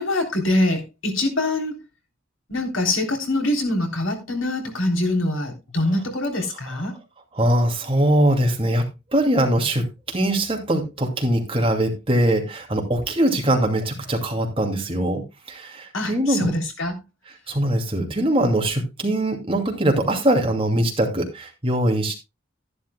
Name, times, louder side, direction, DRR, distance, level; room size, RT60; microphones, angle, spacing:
voice 1, 0.0-1.7 2.5-7.0 15.9-17.0, left 1 dB, 80° left, 3.5 m, -24 dB
voice 2, 7.4-8.9 9.1-15.2 15.5-16.5 17.5-22.1, right 1 dB, 30° right, 2.5 m, -22 dB
13.5 x 11.0 x 2.3 m
head